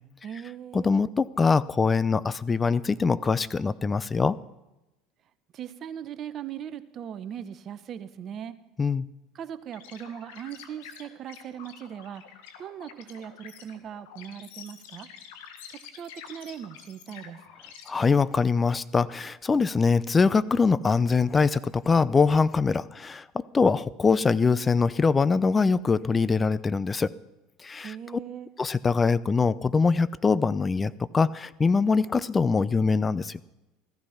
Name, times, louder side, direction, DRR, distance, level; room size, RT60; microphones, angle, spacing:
voice 1, 0.2-0.9 5.5-8.6 9.3-12.2 12.6-15.1 15.9-17.4 27.8-28.5, right 9 dB, 45° right, 13 dB, 1.1 m, -39 dB
voice 2, 0.7-4.3 8.8-9.0 17.9-23.2 23.5-27.1 27.6-27.9 28.6-33.4, left 4 dB, 25° left, 18 dB, 0.7 m, -23 dB
sound 1, 9.7-17.9, left 8 dB, 75° left, 1.7 m, -48 dB
15.0 x 14.5 x 5.8 m, 0.94 s
hypercardioid pair, 80°, 0 cm